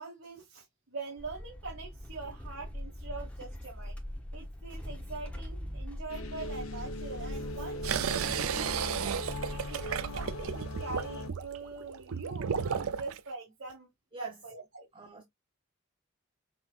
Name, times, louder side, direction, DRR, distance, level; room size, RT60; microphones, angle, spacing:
voice 1, 0.0-4.0 4.3-13.9 14.2-14.9, right 3 dB, 70° right, 1.4 m, -43 dB
sound 1, 1.2-10.6, equal, 5° left, 0.8 m, -42 dB
sound 2, 6.1-11.3, left 1 dB, 80° left, 0.9 m, -40 dB
sound 3, 7.8-13.2, right 7 dB, 90° right, 0.4 m, -34 dB
voice 2, 14.9-15.2, right 3 dB, 25° right, 0.6 m, -46 dB
5.8 x 2.9 x 2.4 m
head